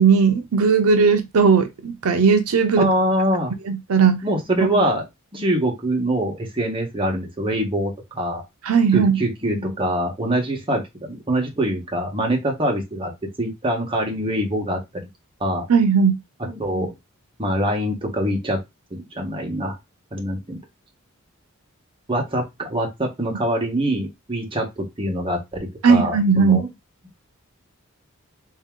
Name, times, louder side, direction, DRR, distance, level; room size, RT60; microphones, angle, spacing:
voice 1, 0.0-2.9 3.7-4.2 8.6-9.2 15.7-16.2 25.8-26.6, right 5 dB, 75° right, 0.5 m, -17 dB
voice 2, 2.8-3.5 4.2-5.0 5.3-8.4 8.9-10.8 11.1-13.1 13.4-14.8 15.4-15.6 16.4-16.9 17.4-18.6 18.9-19.8 20.1-20.6 22.1-26.7, right 1 dB, 25° right, 1.2 m, -24 dB
3.6 x 2.8 x 3.6 m
head